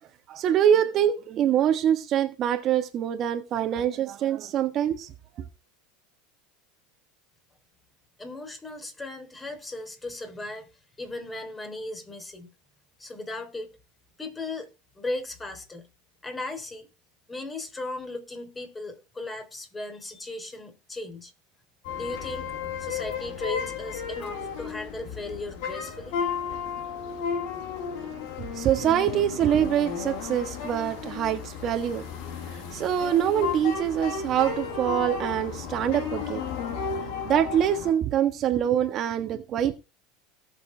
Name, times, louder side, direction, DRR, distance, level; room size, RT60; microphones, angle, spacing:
voice 1, 0.3-5.4 28.5-32.0 32.4-36.5 37.2-39.7, right 10 dB, 40° right, 1.4 m, -25 dB
voice 2, 8.2-10.7 11.0-12.5 13.0-13.7 14.2-14.7 15.0-15.9 16.2-16.9 17.3-21.3 21.9-22.5 22.8-26.2, left 2 dB, 15° left, 3.5 m, -36 dB
sound 1, 21.8-37.9, left 6 dB, 65° left, 5.5 m, -34 dB
18.0 x 7.0 x 3.4 m
supercardioid pair, 115°, 0 cm